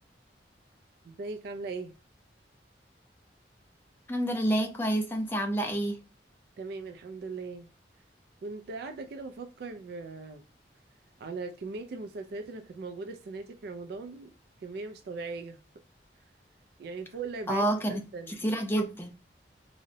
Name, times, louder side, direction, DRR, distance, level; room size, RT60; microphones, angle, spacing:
voice 1, 1.0-1.9 6.6-7.7 8.4-10.4 11.2-14.3 14.6-15.6 16.8-18.4, right 3 dB, 60° right, 0.3 m, -39 dB
voice 2, 4.1-6.0 17.5-19.1, right 1 dB, 15° left, 0.4 m, -29 dB
3.8 x 2.1 x 2.6 m
head